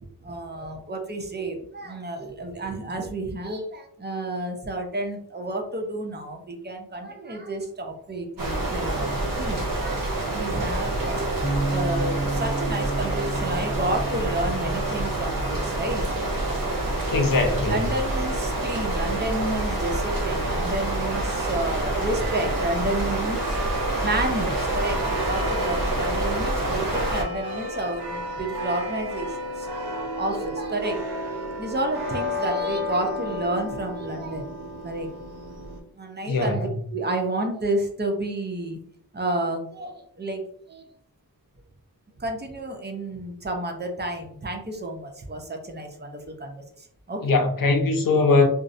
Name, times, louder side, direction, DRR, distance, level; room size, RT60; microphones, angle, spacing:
voice 1, 0.2-16.0 17.7-23.6 24.0-31.0 31.3-34.5 34.8-35.1 35.9-38.8 39.1-40.4 40.7-40.9 42.2-47.4, right 1 dB, 25° right, 0.6 m, -31 dB
sound 1, 8.4-27.2, right 2 dB, 60° right, 0.8 m, -27 dB
Bass guitar, 11.4-17.7, right 3 dB, ahead, 1.2 m, -33 dB
voice 2, 17.1-17.8 36.3-36.7 47.2-48.5, left 3 dB, 60° left, 0.6 m, -21 dB
sound 2, 22.2-35.8, left 1 dB, 85° right, 0.6 m, -33 dB
2.5 x 2.0 x 2.5 m
cardioid pair, 45°, 38 cm